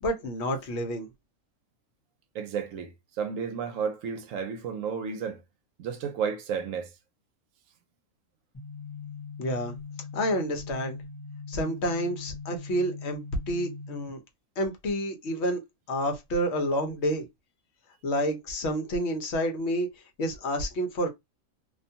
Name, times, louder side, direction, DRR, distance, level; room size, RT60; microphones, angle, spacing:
voice 1, 0.0-1.1 9.4-9.8 10.1-11.0 11.5-13.2 13.5-14.2 14.6-15.6 15.9-17.3 18.0-19.9 20.2-21.1, equal, 65° left, 0.9 m, -29 dB
voice 2, 2.3-5.4 5.8-6.9, right 6 dB, 80° right, 0.9 m, -32 dB
sound 1, 8.5-14.1, left 4 dB, 20° left, 0.8 m, -41 dB
2.5 x 2.2 x 2.6 m
omnidirectional pair, 1.4 m